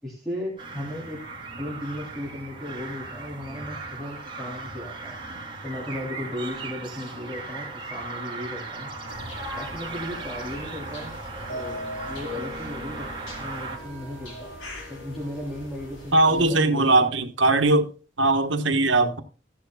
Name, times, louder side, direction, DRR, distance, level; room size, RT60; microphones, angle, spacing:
voice 1, 0.0-1.2 1.6-5.2 5.6-8.9 9.5-11.1 11.5-11.8 12.1-13.1 13.4-14.5 14.9-17.1, left 1 dB, ahead, 3.2 m, -36 dB
sound 1, 0.6-13.8, right 3 dB, 25° right, 3.0 m, -37 dB
sound 2, 9.1-16.5, left 1 dB, 85° left, 4.8 m, -39 dB
voice 2, 16.1-17.9 18.2-19.2, right 2 dB, 80° right, 1.3 m, -20 dB
14.5 x 11.0 x 2.4 m
head